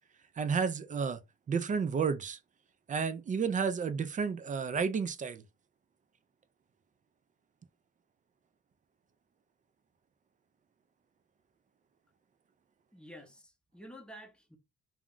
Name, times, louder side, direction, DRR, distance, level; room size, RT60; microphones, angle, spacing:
voice 1, 0.4-1.2 1.5-2.4 2.9-5.4, right 6 dB, 25° right, 0.3 m, -31 dB
voice 2, 12.9-14.6, equal, 5° left, 0.7 m, -50 dB
2.3 x 2.1 x 3.6 m
cardioid pair, 90°, 30 cm